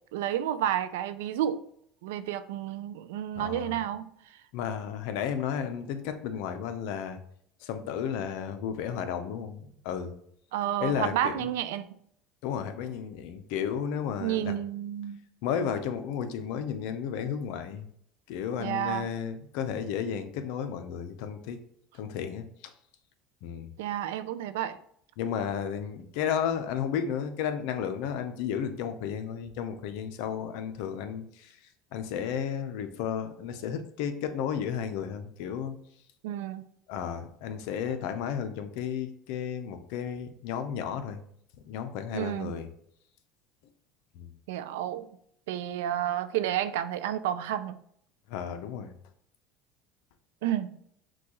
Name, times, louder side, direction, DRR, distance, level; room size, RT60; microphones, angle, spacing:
voice 1, 0.1-1.6 2.0-4.1 10.5-11.8 14.2-15.2 18.6-19.1 23.8-24.8 36.2-36.7 42.1-42.6 44.5-45.1 45.5-47.8 50.4-50.8, right 11 dB, 90° right, 0.3 m, -31 dB
voice 2, 3.4-3.8 4.5-7.2 7.6-10.1 10.8-11.5 12.4-14.5 15.4-17.9 18.3-21.6 21.9-22.4 23.4-23.7 25.2-31.5 31.9-35.8 36.9-41.2 41.7-42.7 44.2-44.3 48.3-48.9, left 8 dB, 75° left, 0.6 m, -33 dB
6.0 x 2.3 x 3.0 m
supercardioid pair, 120°, 0 cm